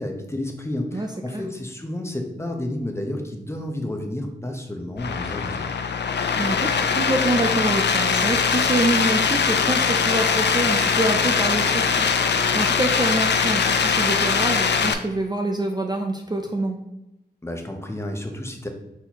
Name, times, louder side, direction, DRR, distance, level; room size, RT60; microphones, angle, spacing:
voice 1, 0.0-5.7 17.4-18.7, left 1 dB, 15° left, 3 dB, 0.8 m, -31 dB
voice 2, 0.9-1.5 6.4-16.8, right 2 dB, 25° right, 2 dB, 0.5 m, -26 dB
sound 1, 5.0-14.9, left 5 dB, 75° left, 0.4 m, -21 dB
4.2 x 4.2 x 2.9 m, 0.93 s
wide cardioid pair, 65°, 18 cm